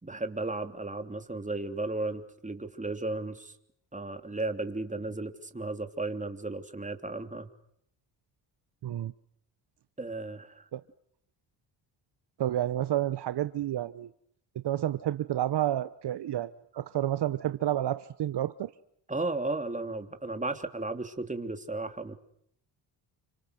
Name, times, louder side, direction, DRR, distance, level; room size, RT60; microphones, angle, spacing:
voice 1, 0.0-3.5 3.9-7.5 10.0-10.6 19.1-22.1, right 2 dB, 15° right, 7 dB, 3.2 m, -34 dB
voice 2, 12.4-14.1 14.6-18.7, right 12 dB, 60° right, 13 dB, 1.0 m, -30 dB
29.5 x 26.0 x 6.6 m, 0.71 s
supercardioid pair, 65°, 46 cm